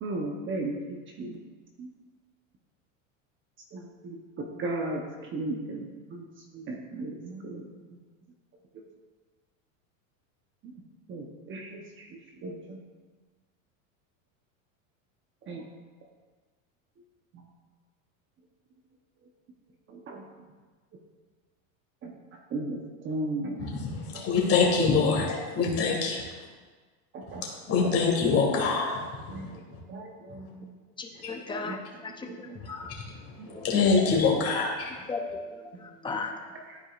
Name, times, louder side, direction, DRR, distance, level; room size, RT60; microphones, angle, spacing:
voice 1, 0.0-1.4 1.8-1.9 3.7-8.0 10.6-10.8 11.1-12.8 15.5-15.7 17.3-17.4 19.9-20.2 22.0-23.7 24.1-24.2 27.1-27.5 27.8-28.0 28.5-28.7 29.0-29.6 29.9-30.7 31.6-31.8 32.2-32.6 33.4-33.6 36.1-36.2 36.7-36.8, right 2 dB, 30° right, 1 dB, 0.8 m, -37 dB
voice 2, 23.6-26.2 27.7-29.0 33.6-34.9, left 4 dB, 35° left, -1 dB, 2.0 m, -24 dB
voice 3, 31.0-32.9 33.5-33.7 34.5-34.7 35.1-36.5, left 3 dB, 10° left, 3 dB, 0.6 m, -37 dB
12.5 x 4.8 x 2.4 m, 1.4 s
supercardioid pair, 135°, 40 cm